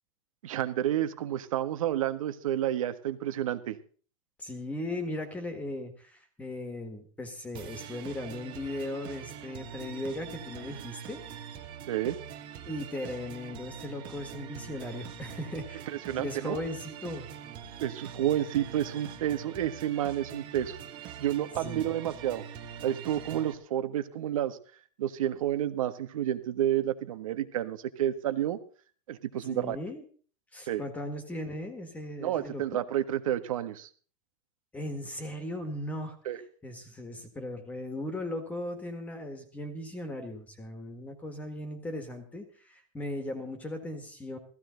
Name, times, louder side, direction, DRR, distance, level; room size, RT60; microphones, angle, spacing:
voice 1, 0.4-3.8 11.9-12.2 15.9-16.6 17.8-20.8 21.2-22.4 22.8-24.6 25.0-28.6 29.1-29.8 30.7-30.8 32.2-33.9 36.2-36.4, right 11 dB, 80° right, 11 dB, 1.7 m, -30 dB
voice 2, 4.4-11.2 12.7-17.3 21.6-21.9 29.5-30.0 30.5-32.8 34.7-44.4, left 1 dB, 10° left, 8 dB, 1.8 m, -38 dB
sound 1, 7.5-23.5, right 8 dB, 30° right, 1.4 m, -44 dB
15.5 x 15.5 x 4.0 m, 0.42 s
supercardioid pair, 165°, 17 cm